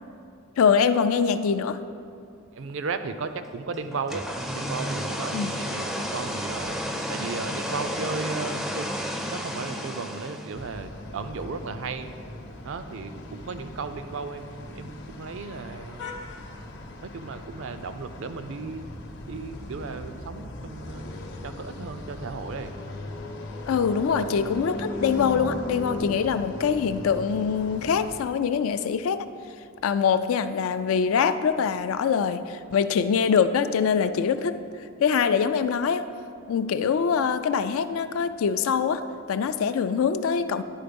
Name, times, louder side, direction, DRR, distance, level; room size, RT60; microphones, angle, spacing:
voice 1, 0.6-1.8 5.3-5.5 23.7-29.3 29.8-34.6 35.0-36.1 36.5-39.0 39.3-40.6, left 6 dB, 75° left, 12 dB, 0.3 m, -24 dB
voice 2, 2.5-4.3 4.5-6.8 7.1-8.9 9.3-12.1 12.6-16.1 17.0-18.9 19.2-21.1 21.4-22.7 24.1-24.2, right 4 dB, 65° right, 10 dB, 0.4 m, -35 dB
sound 1, 3.9-10.7, equal, ahead, 0.4 m, -32 dB
sound 2, 10.5-28.2, left 1 dB, 55° left, 0.7 m, -38 dB
10.5 x 4.2 x 5.2 m, 2.4 s
head